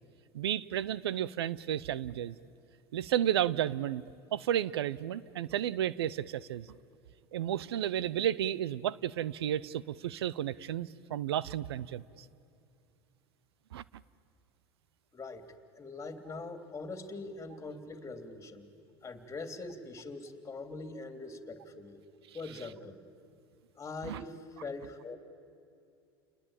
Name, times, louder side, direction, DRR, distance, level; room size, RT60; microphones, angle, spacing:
voice 1, 0.3-2.4 2.9-4.0 4.3-6.7 7.3-12.0 13.7-13.8 24.0-24.2, right 11 dB, 90° right, 20 dB, 0.6 m, -32 dB
voice 2, 15.1-15.4 15.7-18.7 19.0-22.0 22.3-23.0 23.8-25.2, left 3 dB, 25° left, 8 dB, 2.9 m, -42 dB
29.5 x 20.5 x 8.9 m, 2.5 s
hypercardioid pair, 95°, 13 cm